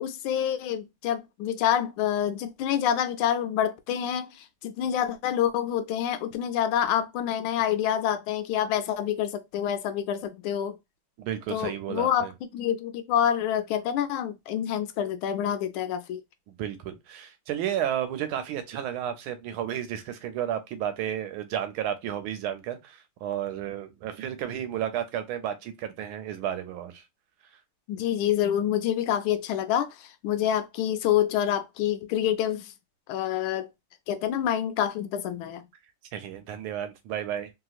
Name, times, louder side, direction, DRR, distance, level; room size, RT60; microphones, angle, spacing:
voice 1, 0.0-10.8 11.5-16.2 27.9-32.7 33.1-33.7 34.1-35.6, left 10 dB, 80° left, 1.3 m, -27 dB
voice 2, 11.2-12.3 16.5-27.0 36.1-37.5, right 10 dB, 75° right, 1.4 m, -32 dB
3.4 x 2.8 x 2.3 m
omnidirectional pair, 2.4 m